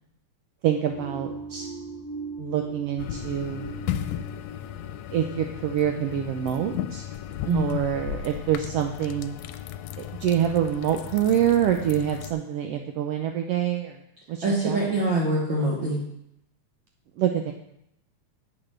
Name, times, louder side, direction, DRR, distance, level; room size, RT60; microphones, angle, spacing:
voice 1, 0.6-1.7 2.4-3.8 5.1-7.1 7.5-9.4 10.2-14.0 14.3-14.8 17.2-17.5, right 10 dB, 85° right, 4 dB, 1.4 m, -26 dB
sound 1, 0.8-5.9, right 4 dB, 30° right, 2.0 m, -39 dB
sound 2, 3.0-12.3, left 11 dB, 85° left, 1.9 m, -35 dB
voice 2, 7.5-7.8 14.4-16.0, right 1 dB, 45° right, -5 dB, 2.1 m, -24 dB
10.0 x 8.1 x 3.3 m, 0.77 s
omnidirectional pair, 3.4 m